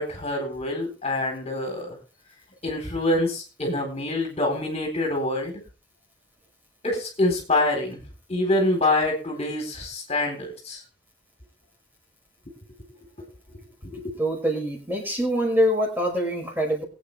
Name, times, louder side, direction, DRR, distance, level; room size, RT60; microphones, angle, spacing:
voice 1, 0.0-2.0 2.6-5.5 6.8-8.0 8.3-10.8 13.8-14.2, left 2 dB, 35° left, 1 dB, 4.0 m, -26 dB
voice 2, 14.2-16.8, equal, 10° right, 0 dB, 5.7 m, -24 dB
23.0 x 8.7 x 3.3 m, 0.35 s
head